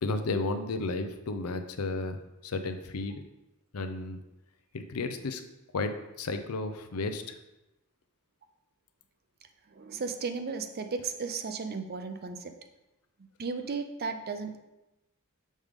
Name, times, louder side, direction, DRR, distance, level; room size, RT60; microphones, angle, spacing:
voice 1, 0.0-2.2 2.4-3.2 3.7-4.2 4.7-5.4 5.7-5.9 6.2-7.4, left 3 dB, 75° left, 8 dB, 0.6 m, -33 dB
voice 2, 9.7-12.5 13.4-14.6, right 4 dB, 45° right, 7 dB, 0.5 m, -35 dB
6.3 x 5.1 x 3.6 m, 0.95 s
head